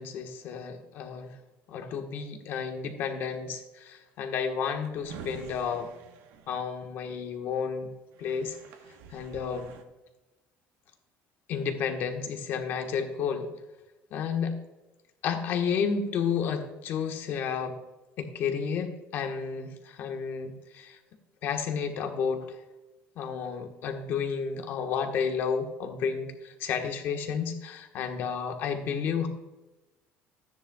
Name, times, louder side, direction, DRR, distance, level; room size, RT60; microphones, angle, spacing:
voice 1, 0.0-1.3 1.7-5.9 6.5-7.9 8.2-8.6 9.1-9.7 11.5-13.5 14.1-14.6 15.2-17.8 18.2-21.0 21.4-22.6 23.2-29.3, left 6 dB, 50° left, 4 dB, 1.3 m, -31 dB
Drawer open or close, 4.6-7.3 7.9-9.8, right 6 dB, 80° right, 1.1 m, -48 dB
13.5 x 9.8 x 2.3 m, 1.1 s
cardioid pair, 155°, 5 cm